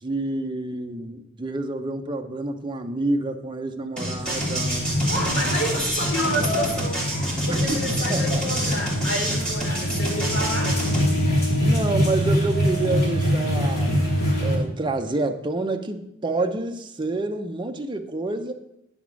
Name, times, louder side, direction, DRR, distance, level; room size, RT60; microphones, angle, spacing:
voice 1, 0.0-4.9 7.5-7.8 8.1-8.4 11.6-14.1 14.4-18.5, right 2 dB, 25° right, 5 dB, 0.6 m, -28 dB
sound 1, 4.0-11.0, equal, 5° left, 1.8 m, -28 dB
sound 2, 4.2-11.2, right 3 dB, 75° right, 0.7 m, -39 dB
sound 3, 4.3-14.6, equal, 55° left, 2.8 m, -24 dB
voice 2, 5.1-7.0 7.5-10.8, equal, 80° left, -2 dB, 2.4 m, -29 dB
9.4 x 3.6 x 6.1 m, 0.82 s
head